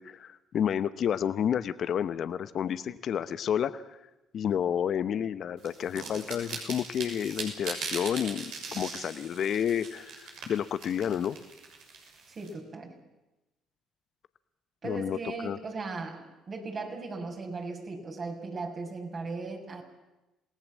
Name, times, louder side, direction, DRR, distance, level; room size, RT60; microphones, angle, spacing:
voice 1, 0.0-4.0 4.3-11.4 14.8-15.6, left 9 dB, 60° left, 14 dB, 0.9 m, -30 dB
sound 1, 5.6-12.5, right 4 dB, 70° right, 6.5 m, -40 dB
voice 2, 12.3-12.9 14.8-19.8, right 3 dB, 45° right, 1 dB, 6.2 m, -37 dB
28.0 x 18.5 x 7.5 m, 1.0 s
hypercardioid pair, 60°, 0 cm